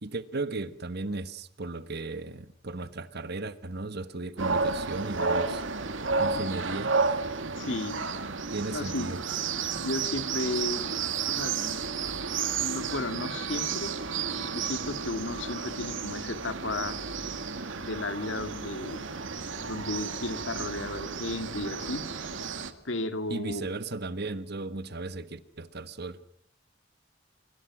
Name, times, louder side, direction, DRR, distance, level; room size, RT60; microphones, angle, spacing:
voice 1, 0.0-5.6 6.2-6.9 8.5-9.2 23.3-26.2, right 2 dB, 60° right, 1.4 m, -35 dB
sound 1, 4.4-22.7, right 5 dB, 90° right, 2.0 m, -32 dB
voice 2, 5.2-5.6 6.3-6.4 7.6-8.0 8.7-9.1 9.8-10.9 11.3-11.8 12.6-13.9 14.4-17.0 17.8-19.1 19.6-22.0 22.8-23.7, left 2 dB, 80° left, 2.2 m, -34 dB
26.0 x 23.5 x 6.2 m
head